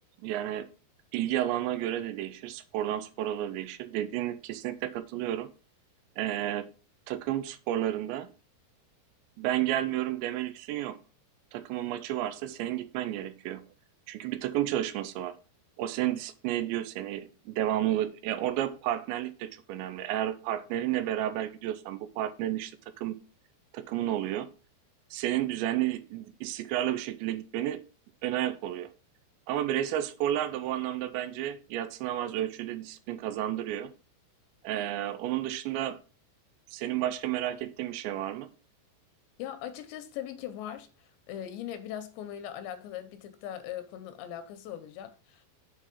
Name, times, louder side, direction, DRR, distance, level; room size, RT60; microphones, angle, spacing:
voice 1, 0.2-0.7 1.1-5.5 6.2-6.7 7.1-8.3 9.4-11.0 11.5-13.6 14.1-15.4 15.8-22.7 23.0-23.2 23.7-24.5 25.1-27.8 28.2-28.9 29.5-33.9 34.6-36.0 36.7-38.5, right 12 dB, 85° right, 2.9 m, -31 dB
voice 2, 39.4-45.5, left 10 dB, 80° left, 2.9 m, -40 dB
7.4 x 4.8 x 5.3 m
omnidirectional pair, 5.2 m